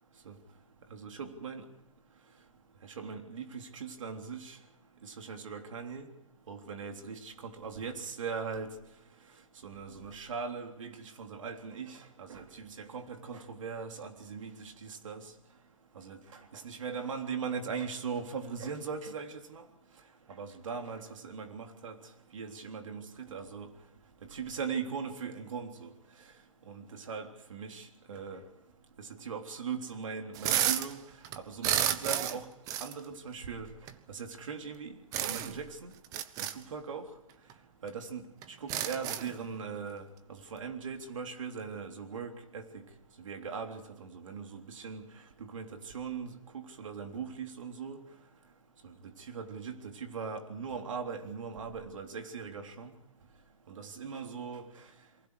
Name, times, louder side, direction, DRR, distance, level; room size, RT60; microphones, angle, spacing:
voice 1, 0.9-1.7 2.8-4.6 5.0-6.1 6.5-8.7 9.6-15.3 15.9-19.6 20.3-22.0 22.3-23.7 24.3-25.9 26.7-28.4 29.0-31.0 31.4-32.5 32.8-33.7 34.1-34.9 35.2-35.9 36.5-37.1 37.8-40.0 40.3-42.8 43.2-45.1 45.4-48.0 48.8-52.9 53.7-54.7, right 6 dB, 70° right, 5 dB, 3.4 m, -40 dB
sound 1, 30.3-30.9 31.2-32.4 32.7-32.9 33.9-34.0 35.1-35.6 36.0-36.5 37.5-37.6 37.9-38.0 38.4-39.4, right 11 dB, 20° right, 1.0 m, -31 dB
28.5 x 23.5 x 4.9 m, 0.84 s
hypercardioid pair, 155°, 17 cm